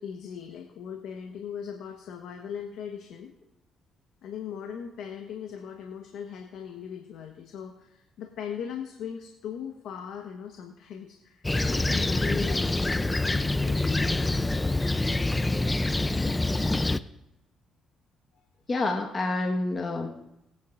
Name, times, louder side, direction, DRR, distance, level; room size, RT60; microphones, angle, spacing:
voice 1, 0.0-3.3 4.2-12.6 12.9-14.5 18.3-18.4, left 8 dB, 75° left, 2 dB, 1.2 m, -39 dB
Fixed-wing aircraft airplane, 11.4-17.0, left 2 dB, 15° left, 0.6 m, -26 dB
voice 2, 12.2-12.9 18.7-20.1, left 2 dB, 35° left, 1 dB, 1.5 m, -29 dB
20.0 x 9.3 x 2.6 m, 0.90 s
supercardioid pair, 70°, 0 cm